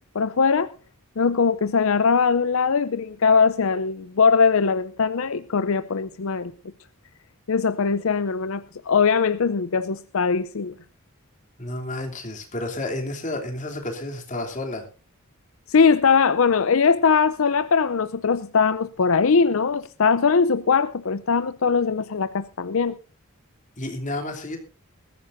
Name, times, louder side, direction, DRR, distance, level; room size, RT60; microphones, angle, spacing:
voice 1, 0.1-0.7 1.2-6.5 7.5-10.7 15.7-23.0, left 5 dB, 65° left, 0.6 m, -21 dB
voice 2, 11.6-14.9 23.8-24.6, left 1 dB, 35° left, 3.0 m, -31 dB
21.0 x 14.5 x 2.6 m
head